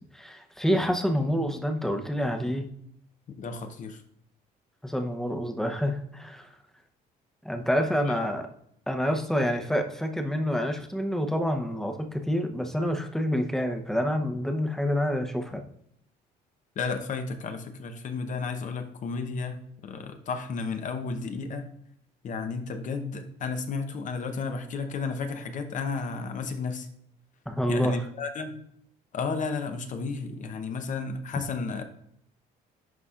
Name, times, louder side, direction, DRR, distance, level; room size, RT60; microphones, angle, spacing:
voice 1, 0.1-2.7 4.8-6.5 7.4-8.5 8.9-15.6 27.5-28.1, equal, 5° left, 5 dB, 0.8 m, -27 dB
voice 2, 3.4-4.0 8.0-8.2 16.8-21.7 22.2-26.9 27.7-28.6 29.1-31.8, left 4 dB, 50° left, 7 dB, 0.8 m, -33 dB
11.0 x 4.1 x 2.4 m, 0.72 s
cardioid pair, 110°, 17 cm